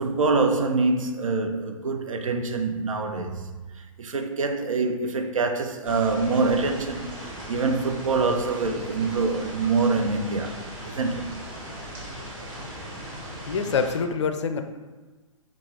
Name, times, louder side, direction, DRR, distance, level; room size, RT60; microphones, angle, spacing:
voice 1, 0.0-3.5 4.0-10.6 10.8-11.3, right 3 dB, 70° right, 0.5 m, -25 dB
sound 1, 5.8-14.0, right 1 dB, 25° right, 1.0 m, -38 dB
voice 2, 13.5-14.6, left 5 dB, 55° left, 0.4 m, -25 dB
3.9 x 2.4 x 4.4 m
figure-of-eight pair, 120°, 17 cm